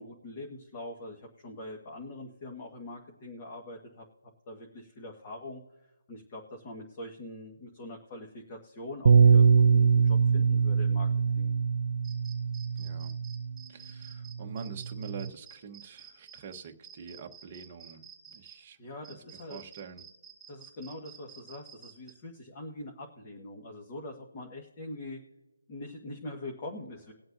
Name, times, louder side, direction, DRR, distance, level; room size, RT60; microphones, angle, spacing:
voice 1, 0.0-4.0 4.5-11.1 11.3-11.5 18.8-19.6 20.5-25.2 25.7-27.1, left 1 dB, 20° left, 0 dB, 1.6 m, -43 dB
Bass guitar, 9.1-13.6 14.3-15.3, right 5 dB, 50° right, 0.5 m, -23 dB
sound 1, 12.0-18.6 19.0-22.1, right 8 dB, 5° right, 3.0 m, -50 dB
voice 2, 12.8-13.1 13.7-18.8 19.1-19.2 19.5-20.0, right 6 dB, 25° right, 4 dB, 1.1 m, -45 dB
21.0 x 7.8 x 2.7 m, 1.1 s
hypercardioid pair, 165°, 0 cm